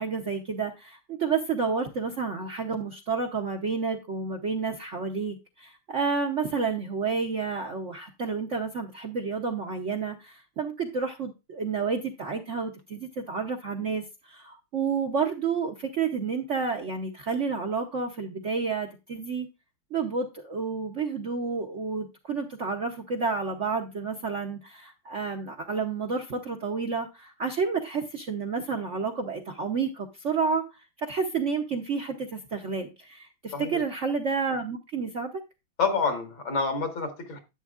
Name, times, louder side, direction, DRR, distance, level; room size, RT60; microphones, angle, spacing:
voice 1, 0.0-19.5 19.9-35.3, right 5 dB, 55° right, 2 dB, 0.8 m, -30 dB
voice 2, 35.8-37.4, left 4 dB, 75° left, 5 dB, 2.6 m, -28 dB
11.0 x 8.2 x 2.4 m, 0.26 s
omnidirectional pair, 2.2 m